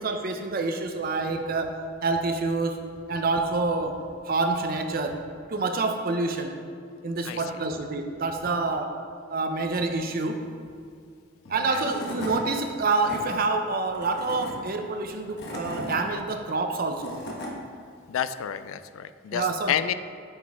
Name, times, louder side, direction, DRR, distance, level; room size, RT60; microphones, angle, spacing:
voice 1, 0.0-1.7 2.0-2.8 3.1-3.9 4.2-5.2 5.5-6.5 7.0-8.9 9.3-10.4 11.5-17.2 19.3-19.7, right 3 dB, 45° right, 5 dB, 0.5 m, -27 dB
Tools / Wood, 11.4-11.5 11.8-12.4 12.8-13.2 13.9-14.5 15.2-16.0 16.7-17.5, left 1 dB, 55° left, 1.1 m, -36 dB
voice 2, 18.1-19.9, left 9 dB, 85° left, 13 dB, 0.3 m, -30 dB
8.9 x 4.1 x 3.5 m, 2.3 s
head